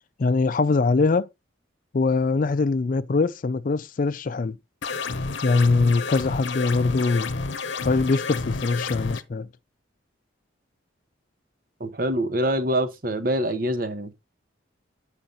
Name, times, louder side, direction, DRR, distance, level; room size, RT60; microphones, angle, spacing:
voice 1, 0.2-1.3 1.9-4.6 5.4-7.3 7.8-9.5, left 3 dB, 40° left, 0.4 m, -22 dB
sound 1, 4.8-9.2, left 4 dB, 65° left, 0.8 m, -30 dB
voice 2, 11.8-14.1, right 1 dB, 45° right, 1.1 m, -25 dB
9.2 x 5.1 x 4.0 m
head